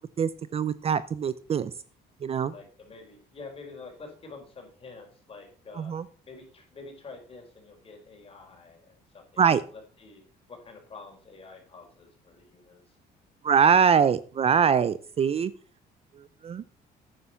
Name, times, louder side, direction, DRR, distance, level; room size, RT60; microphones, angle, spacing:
voice 1, 0.2-1.7 2.2-2.5 5.8-6.0 9.4-9.6 13.4-15.5 16.4-16.6, right 7 dB, 35° right, 16 dB, 0.5 m, -23 dB
voice 2, 2.5-5.9 6.3-9.4 9.7-10.2 10.5-13.0, left 3 dB, 35° left, 2 dB, 4.4 m, -47 dB
9.7 x 8.0 x 5.8 m, 0.42 s
cardioid pair, 110°, 17 cm